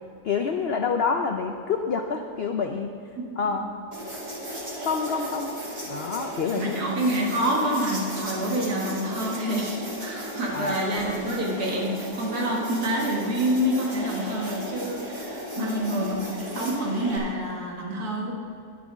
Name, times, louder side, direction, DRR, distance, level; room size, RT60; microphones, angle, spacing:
voice 1, 0.2-2.9 3.4-3.7 4.8-5.6 5.9-6.8 10.5-10.8 15.6-15.9, left 5 dB, 80° left, 5 dB, 0.5 m, -27 dB
voice 2, 3.2-3.7 6.5-18.3, equal, 65° right, -2 dB, 2.3 m, -27 dB
sound 1, 3.9-17.2, right 1 dB, 25° right, 2.1 m, -36 dB
10.5 x 6.9 x 6.3 m, 2.4 s
omnidirectional pair, 1.8 m